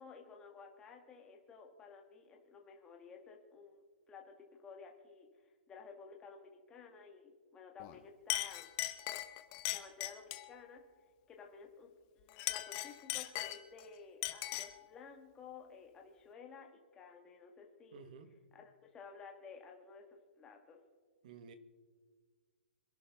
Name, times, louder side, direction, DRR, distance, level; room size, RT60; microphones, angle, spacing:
voice 1, 0.0-5.3 5.7-8.7 9.7-10.8 11.3-18.1 18.5-20.8, left 5 dB, 15° left, 1.7 m, -54 dB
Chink clink, 7.8-8.0 8.3-10.5 12.3-13.8 14.2-14.8, left 16 dB, 30° left, 0.8 m, -39 dB
voice 2, 17.9-18.4 21.2-21.5, right 6 dB, 45° right, 1.5 m, -53 dB
26.0 x 11.0 x 3.6 m
hypercardioid pair, 160°, 6 cm